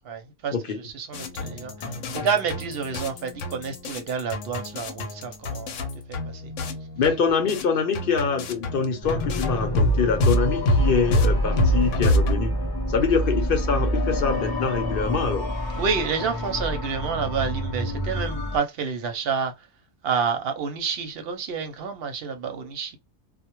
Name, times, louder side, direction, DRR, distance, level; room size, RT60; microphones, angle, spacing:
voice 1, 0.0-5.8 6.1-6.5 15.8-19.7 20.0-23.0, right 6 dB, 65° right, 0.7 m, -29 dB
sound 1, 1.1-7.7 7.9-12.3, left 1 dB, 85° left, 0.9 m, -26 dB
voice 2, 7.0-12.6 12.9-15.5, left 5 dB, 55° left, 0.8 m, -25 dB
sound 2, 9.0-18.6, left 1 dB, 35° left, 0.4 m, -28 dB
2.1 x 2.1 x 2.9 m
omnidirectional pair, 1.2 m